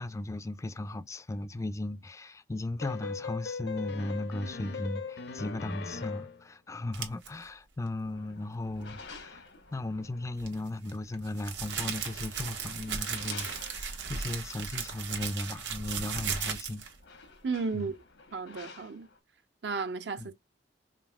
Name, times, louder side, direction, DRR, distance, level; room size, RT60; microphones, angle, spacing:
voice 1, 0.0-16.8 17.7-17.9 20.2-20.3, left 1 dB, 15° left, 0.3 m, -36 dB
sound 1, 2.8-6.4, left 5 dB, 65° left, 0.6 m, -39 dB
sound 2, 6.9-7.3 10.4-17.0, right 6 dB, 85° right, 1.2 m, -36 dB
sound 3, 8.0-10.6 11.7-14.3 16.3-16.4 16.7-19.2, left 4 dB, 90° left, 1.1 m, -50 dB
voice 2, 17.4-17.9 18.3-19.1 19.6-20.3, right 4 dB, 70° right, 0.6 m, -33 dB
5.1 x 2.7 x 2.3 m
head